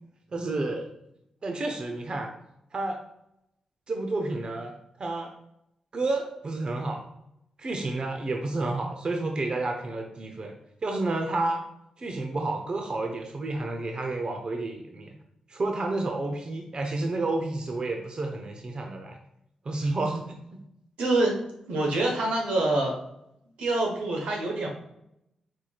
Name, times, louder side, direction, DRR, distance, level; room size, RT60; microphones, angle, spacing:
voice 1, 0.3-0.9 1.4-2.3 2.7-3.0 3.9-4.7 5.0-5.3 5.9-7.0 7.6-10.5 10.8-11.6 12.0-15.1 15.5-19.2 19.7-20.2 20.5-20.6, right 2 dB, 50° right, 3 dB, 0.7 m, -30 dB
voice 2, 21.0-21.4 21.7-23.0 23.6-24.7, right 2 dB, 90° right, 0 dB, 1.1 m, -25 dB
4.5 x 4.3 x 2.4 m, 0.80 s
cardioid pair, 55°, 2 cm